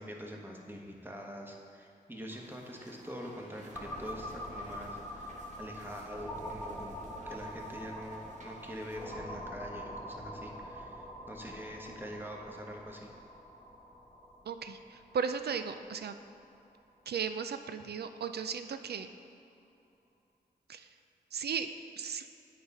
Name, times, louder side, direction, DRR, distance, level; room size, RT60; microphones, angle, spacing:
voice 1, 0.0-6.9 7.3-13.1, equal, 10° right, 0 dB, 1.2 m, -44 dB
sound 1, 2.3-9.1, right 1 dB, 45° right, 1.3 m, -56 dB
sound 2, 3.7-17.3, equal, 15° left, 1.3 m, -45 dB
voice 2, 14.4-16.2 17.1-19.1 20.7-21.0 21.3-22.3, right 6 dB, 70° right, 9 dB, 0.4 m, -36 dB
8.6 x 4.1 x 5.4 m, 2.7 s
cardioid pair, 50°, 18 cm